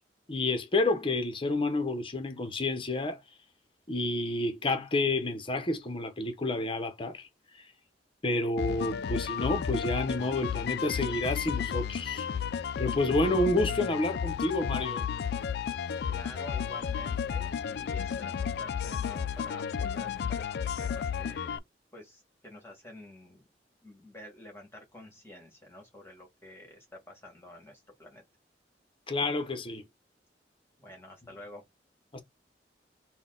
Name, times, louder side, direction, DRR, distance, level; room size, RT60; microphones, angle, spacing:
voice 1, 0.3-3.2 3.9-7.3 7.6-7.7 8.2-12.3 12.8-15.1 29.1-29.8 32.1-32.2, left 2 dB, 30° left, 0.8 m, -29 dB
sound 1, 8.6-21.6, left 7 dB, 65° left, 0.3 m, -33 dB
voice 2, 16.1-21.6 21.9-23.4 23.8-28.2 30.8-31.6, left 1 dB, 15° left, 1.7 m, -49 dB
4.0 x 2.2 x 3.8 m
head